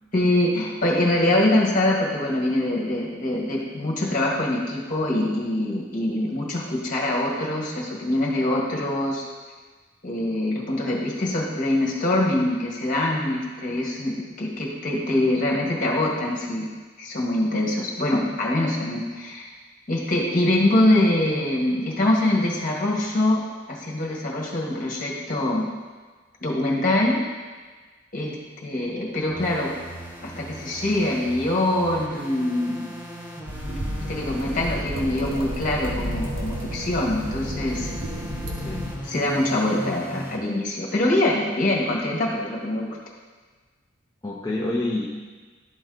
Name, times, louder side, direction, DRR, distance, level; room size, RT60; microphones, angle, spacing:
voice 1, 0.1-9.2 10.0-16.7 17.0-19.5 19.9-23.4 23.7-25.7 26.4-27.2 28.1-28.4 28.6-29.7 30.2-32.9 34.1-37.9 39.1-42.9, left 1 dB, 45° left, -2 dB, 1.7 m, -24 dB
sound 1, 29.3-40.4, right 1 dB, 10° right, 1.1 m, -39 dB
sound 2, 33.5-39.0, equal, 80° right, 1.4 m, -31 dB
voice 2, 38.6-39.1 44.2-45.1, left 2 dB, 20° left, -4 dB, 0.6 m, -28 dB
12.0 x 4.1 x 4.0 m, 1.4 s
head